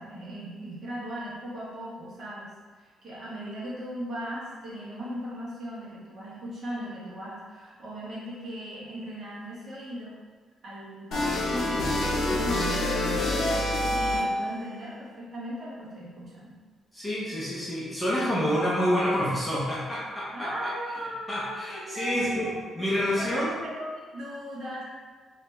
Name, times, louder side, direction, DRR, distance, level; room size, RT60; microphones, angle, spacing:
voice 1, 0.0-2.5 2.7-10.1 10.6-16.5 20.3-22.5 23.2-24.8, equal, 40° right, -8 dB, 1.2 m, -38 dB
sound 1, 11.1-14.5, left 1 dB, 65° left, 0.6 m, -26 dB
voice 2, 16.9-20.7 21.3-23.6, equal, 10° left, -8 dB, 0.6 m, -28 dB
3.2 x 2.8 x 3.4 m, 1.4 s
cardioid pair, 175°, 0 cm